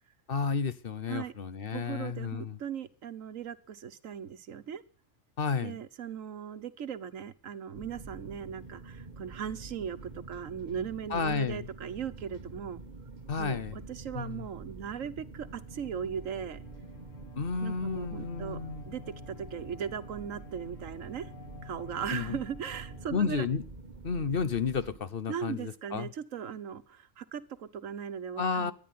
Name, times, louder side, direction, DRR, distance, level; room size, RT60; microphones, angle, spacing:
voice 1, 0.3-2.6 5.4-5.8 11.1-11.7 13.3-13.8 14.1-14.5 17.3-18.8 22.1-22.4 23.1-23.6 24.0-26.1 28.4-28.7, left 5 dB, 50° left, 1.0 m, -32 dB
voice 2, 1.7-4.8 5.6-12.8 13.4-16.6 17.6-18.6 18.8-21.3 21.6-23.5 25.3-28.7, right 8 dB, 85° right, 1.4 m, -38 dB
sound 1, 7.7-25.0, right 3 dB, 35° right, 1.5 m, -47 dB
Bowed string instrument, 15.4-23.8, left 6 dB, 80° left, 2.3 m, -52 dB
14.0 x 10.5 x 9.4 m
omnidirectional pair, 1.3 m